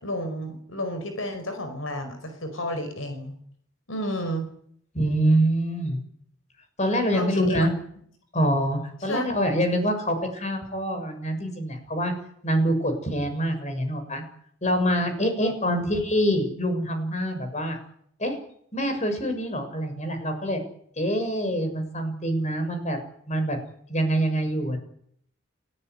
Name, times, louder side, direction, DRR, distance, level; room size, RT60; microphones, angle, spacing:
voice 1, 0.0-3.3 3.9-4.5 7.1-7.7 9.0-9.3 15.4-15.5, equal, 85° left, 7 dB, 5.0 m, -31 dB
voice 2, 4.9-6.0 6.8-7.7 8.3-12.1 12.4-14.2 14.6-17.8 18.2-18.4 18.7-20.6 21.0-23.0 23.3-23.6 23.9-24.8, equal, 35° left, 7 dB, 6.8 m, -25 dB
29.5 x 18.0 x 9.8 m, 0.68 s
head